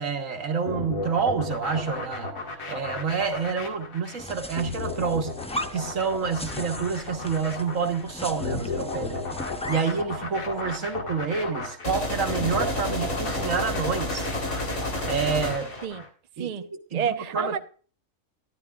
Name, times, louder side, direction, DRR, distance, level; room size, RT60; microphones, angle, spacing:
voice 1, 0.0-2.3 2.7-5.3 5.7-9.2 9.7-14.3 15.1-15.7 16.4-17.5, right 5 dB, 70° right, 1.8 m, -28 dB
sound 1, 0.7-16.1, left 3 dB, 90° left, 2.3 m, -34 dB
sound 2, 4.2-10.0, equal, 10° left, 0.4 m, -38 dB
sound 3, 11.8-15.9, left 1 dB, 60° left, 3.9 m, -30 dB
voice 2, 16.4-17.6, right 7 dB, 40° right, 0.6 m, -30 dB
13.5 x 12.0 x 2.4 m
omnidirectional pair, 1.4 m